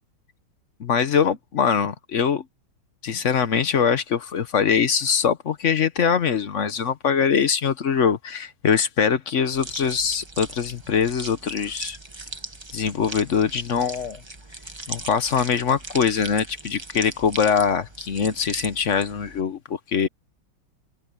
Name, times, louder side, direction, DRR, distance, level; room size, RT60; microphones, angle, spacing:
voice 1, 0.8-2.4 3.0-12.0 12.7-14.2 14.9-20.1, left 7 dB, 50° left, 0.9 m, -23 dB
sound 1, 9.5-19.4, right 2 dB, 15° right, 1.0 m, -38 dB
omnidirectional pair, 2.3 m